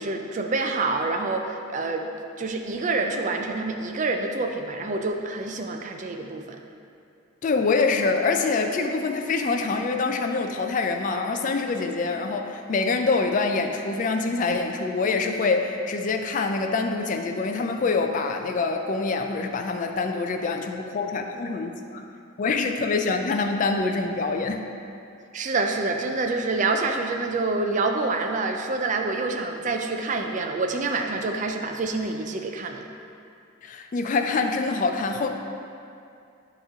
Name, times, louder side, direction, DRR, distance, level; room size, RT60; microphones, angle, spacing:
voice 1, 0.0-2.1 2.4-6.6 25.3-32.8, right 3 dB, 35° right, 4 dB, 0.4 m, -27 dB
voice 2, 7.4-22.0 22.4-24.6 33.6-35.3, left 4 dB, 40° left, 4 dB, 0.3 m, -25 dB
7.8 x 3.0 x 4.9 m, 2.5 s
head